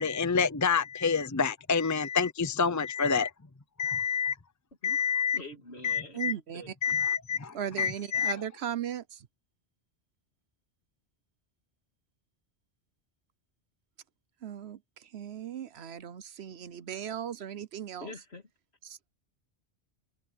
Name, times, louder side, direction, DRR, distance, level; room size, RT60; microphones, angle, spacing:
voice 1, 0.0-3.3 3.8-4.3 4.8-5.4 5.8-6.3 6.8-8.3, left 6 dB, 20° left, 0.7 m, -28 dB
voice 2, 5.3-6.2 6.5-7.0 18.0-18.4, left 2 dB, 70° left, 3.2 m, -45 dB
voice 3, 6.1-6.7 7.5-9.3 14.4-18.1 18.8-19.0, right 9 dB, 75° right, 1.1 m, -37 dB
omnidirectional pair, 1.1 m